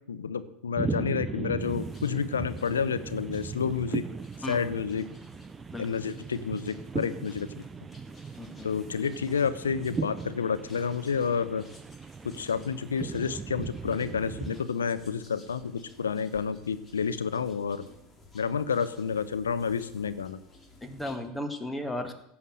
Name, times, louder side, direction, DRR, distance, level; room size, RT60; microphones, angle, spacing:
voice 1, 0.1-4.1 4.5-5.1 5.8-7.6 8.6-11.6 12.2-17.9 18.3-20.4, left 6 dB, 85° left, 12 dB, 0.8 m, -30 dB
sound 1, 0.8-14.6, right 5 dB, 25° right, 0.5 m, -38 dB
sound 2, 1.6-21.2, left 2 dB, 25° left, 3.0 m, -55 dB
voice 2, 8.4-8.7 20.8-22.1, left 1 dB, 10° left, 6 dB, 2.0 m, -35 dB
16.0 x 5.9 x 7.8 m, 0.81 s
hypercardioid pair, 85°, 0 cm